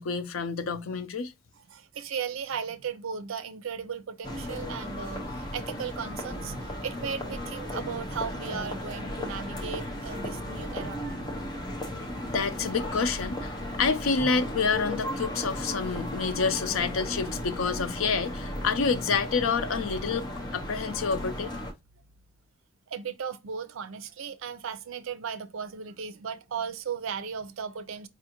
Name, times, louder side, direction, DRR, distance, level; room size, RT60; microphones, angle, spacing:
voice 1, 0.0-1.3 12.3-20.3 20.5-21.5, left 5 dB, 90° left, 0.5 m, -28 dB
voice 2, 1.7-11.3 22.9-28.1, right 6 dB, 80° right, 0.5 m, -36 dB
sound 1, 4.2-21.7, left 1 dB, 20° left, 0.6 m, -35 dB
4.7 x 2.5 x 2.9 m
head